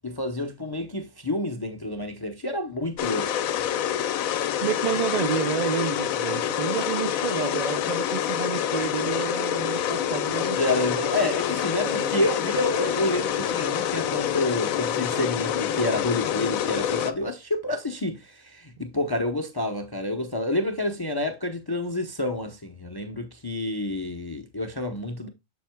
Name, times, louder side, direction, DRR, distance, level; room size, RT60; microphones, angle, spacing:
voice 1, 0.0-3.6 10.6-25.3, left 1 dB, 20° left, 0.6 m, -29 dB
sound 1, 3.0-17.1, left 10 dB, 80° left, 1.0 m, -27 dB
voice 2, 4.6-10.9 11.8-12.3, right 8 dB, 60° right, 0.4 m, -30 dB
7.4 x 7.2 x 2.2 m
omnidirectional pair, 1.4 m